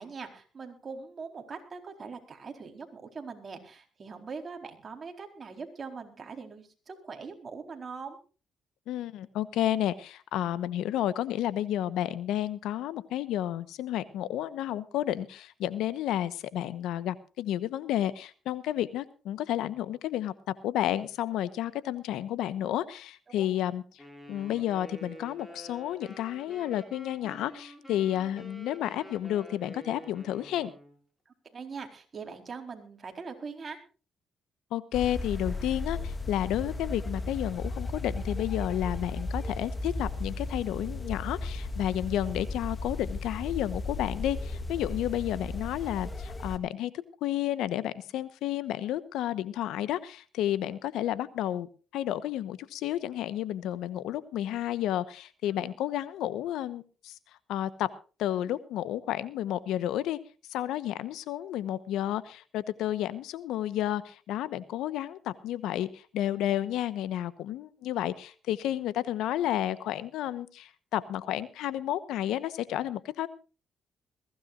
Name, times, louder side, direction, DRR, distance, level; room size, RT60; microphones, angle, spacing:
voice 1, 0.0-8.2 23.3-23.5 31.3-33.8 55.6-55.8, right 5 dB, 40° right, 4 dB, 4.2 m, -42 dB
voice 2, 8.9-20.3 20.6-24.0 24.3-30.7 34.7-46.9 47.2-51.7 51.9-57.1 57.5-57.9 58.2-60.2 60.5-73.3, left 12 dB, 90° left, 15 dB, 1.1 m, -31 dB
Wind instrument woodwind instrument, 24.0-31.0, equal, 5° left, 6.3 m, -48 dB
sound 1, 34.9-46.6, left 2 dB, 25° left, 1.9 m, -35 dB
21.5 x 16.0 x 2.6 m, 0.35 s
cardioid pair, 90°, 0 cm